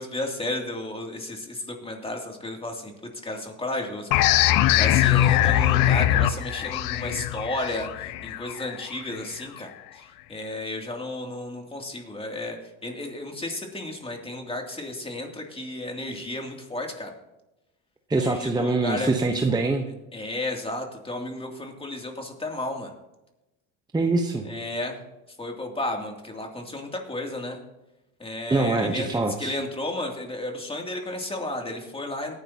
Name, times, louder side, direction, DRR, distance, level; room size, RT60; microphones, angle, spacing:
voice 1, 0.0-2.9 3.2-17.1 18.1-19.3 20.1-22.9 24.4-25.0 25.4-27.6 28.2-32.4, left 1 dB, 15° left, 2 dB, 2.7 m, -33 dB
sound 1, 4.1-9.4, left 12 dB, 60° left, 0.7 m, -22 dB
voice 2, 18.1-19.9 23.9-24.4 28.5-29.6, right 3 dB, 10° right, 4 dB, 1.0 m, -24 dB
18.0 x 10.5 x 2.9 m, 0.95 s
supercardioid pair, 90°, 38 cm